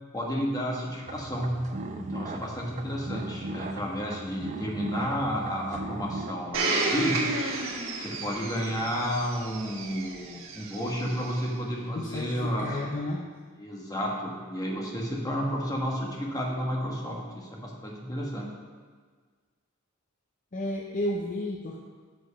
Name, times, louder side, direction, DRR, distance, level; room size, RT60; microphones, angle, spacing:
voice 1, 0.1-1.6 1.9-7.2 8.0-12.7 13.6-18.5, equal, 20° left, -2 dB, 1.3 m, -31 dB
sound 1, 1.1-6.3, right 2 dB, 35° right, 0.5 m, -38 dB
Domestic sounds home sounds, 6.5-11.4 12.1-12.2, right 2 dB, 65° right, 1.4 m, -32 dB
voice 2, 11.9-13.2 20.5-21.8, left 1 dB, 40° left, 0 dB, 0.6 m, -32 dB
7.6 x 5.2 x 5.6 m, 1.5 s
head